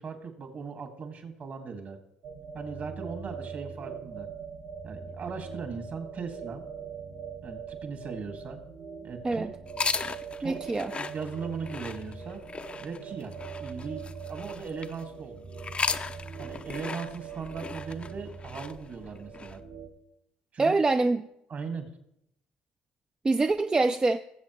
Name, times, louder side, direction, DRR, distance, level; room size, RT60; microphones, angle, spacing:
voice 1, 0.0-2.0 2.5-4.3 4.8-6.6 7.4-8.6 9.0-9.5 10.4-10.6 11.0-12.4 12.8-15.4 16.4-19.6 20.5-20.7 21.5-21.9, right 5 dB, 50° right, 2.0 m, -38 dB
sound 1, 2.2-19.9, right 6 dB, 70° right, 1.7 m, -42 dB
sound 2, 9.7-15.0 15.5-19.6, left 4 dB, 30° left, 0.5 m, -36 dB
voice 2, 10.4-10.9 20.6-21.3 23.2-24.2, right 3 dB, 20° right, 0.4 m, -25 dB
19.0 x 7.6 x 3.1 m
hypercardioid pair, 65°, 4 cm